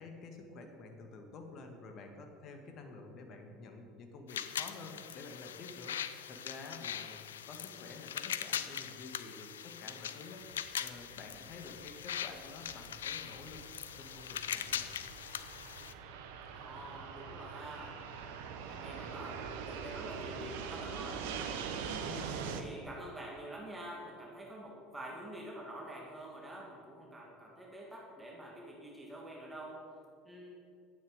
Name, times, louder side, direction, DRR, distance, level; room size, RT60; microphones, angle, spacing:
voice 1, 0.0-7.2 7.5-13.6 14.0-14.9 22.0-22.4, left 3 dB, 50° left, 4 dB, 1.8 m, -50 dB
sound 1, 4.3-15.9, left 9 dB, 80° left, 0.4 m, -41 dB
Fixed-wing aircraft airplane, 10.4-22.6, right 6 dB, 70° right, 1.0 m, -43 dB
voice 2, 16.5-17.9 18.6-21.3 22.0-29.8 30.2-30.6, right 1 dB, 10° right, -3 dB, 2.5 m, -47 dB
11.5 x 9.1 x 5.2 m, 2.4 s
hypercardioid pair, 75°, 0 cm